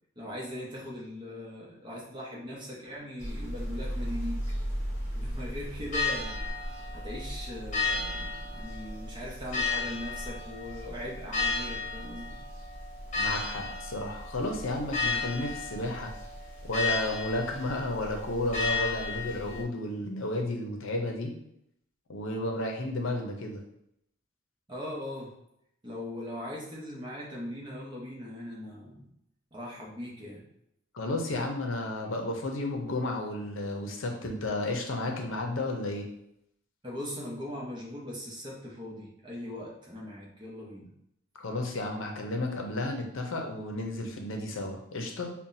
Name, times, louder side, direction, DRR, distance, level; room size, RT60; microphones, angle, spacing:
voice 1, 0.2-4.4 5.1-6.5 6.9-12.4 24.7-25.3 25.8-29.1 29.5-30.4 36.8-40.9, left 1 dB, 25° right, -3 dB, 0.8 m, -40 dB
sound 1, 3.2-19.6, left 3 dB, 35° left, 1.1 m, -34 dB
voice 2, 13.2-16.1 16.7-21.3 22.1-23.6 30.9-36.1 41.4-45.3, left 2 dB, 70° left, 2 dB, 0.6 m, -32 dB
5.6 x 2.2 x 2.6 m, 0.77 s
head